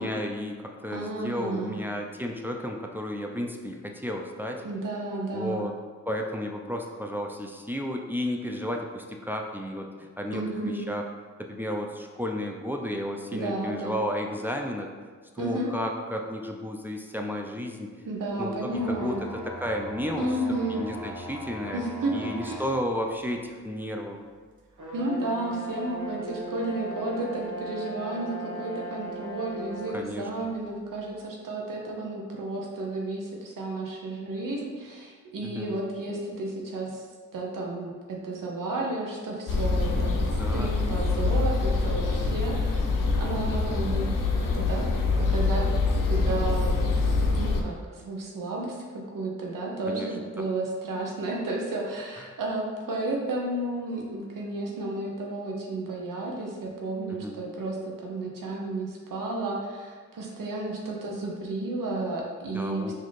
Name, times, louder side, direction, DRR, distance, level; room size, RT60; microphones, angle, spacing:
voice 1, 0.0-4.6 5.3-5.7 6.1-11.0 11.4-14.9 15.4-17.9 18.4-19.2 19.4-20.3 20.7-21.8 22.1-24.2 29.9-30.5 35.4-35.8 40.3-40.7 49.9-50.1 50.4-50.5 57.2-57.4 62.5-62.9, equal, 5° right, 1 dB, 0.4 m, -33 dB
voice 2, 0.9-1.8 4.6-5.7 10.3-10.8 13.3-14.0 15.4-15.7 18.0-19.2 20.2-20.8 21.7-22.6 24.9-37.1 37.3-44.9 45.2-45.7 46.1-46.9 47.4-62.9, right 2 dB, 85° right, -2 dB, 0.7 m, -32 dB
sound 1, 18.7-22.8 23.4-23.5 24.8-30.1, right 1 dB, 65° right, 1.0 m, -38 dB
sound 2, 39.5-47.6, left 3 dB, 90° left, 0.5 m, -25 dB
4.0 x 2.7 x 3.2 m, 1.5 s
cardioid pair, 40°, 32 cm